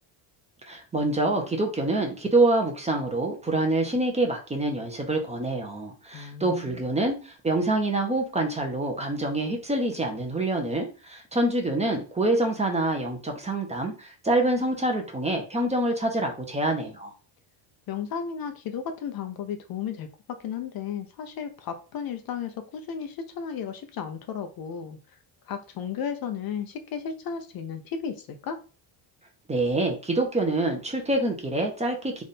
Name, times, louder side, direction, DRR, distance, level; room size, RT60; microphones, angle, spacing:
voice 1, 0.7-17.1 29.5-32.2, right 2 dB, 15° right, 2 dB, 0.8 m, -26 dB
voice 2, 6.1-6.8 17.9-25.0 25.5-28.6, left 7 dB, 50° left, 7 dB, 0.6 m, -34 dB
3.5 x 2.6 x 4.1 m, 0.34 s
cardioid pair, 125°, 48 cm